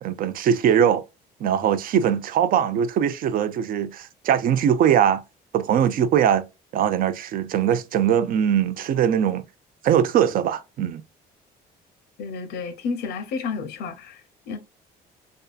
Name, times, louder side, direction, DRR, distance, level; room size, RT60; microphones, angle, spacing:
voice 1, 0.0-1.0 1.4-5.2 5.5-6.5 6.7-9.4 9.8-11.0, right 9 dB, 55° right, 0.4 m, -21 dB
voice 2, 12.2-14.6, left 5 dB, 75° left, 0.6 m, -31 dB
2.6 x 2.3 x 2.3 m
cardioid pair, 110°, 17 cm